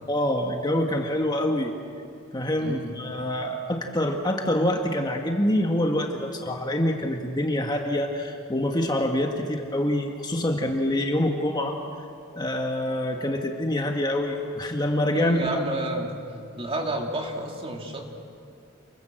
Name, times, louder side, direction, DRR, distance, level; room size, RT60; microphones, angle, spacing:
voice 1, 0.1-1.7 2.3-11.8 12.3-15.4, left 1 dB, 20° left, 2 dB, 1.6 m, -26 dB
voice 2, 2.6-2.9 15.1-16.2 16.5-18.1, right 1 dB, 30° right, 2 dB, 2.7 m, -30 dB
28.5 x 22.0 x 7.8 m, 2.4 s
head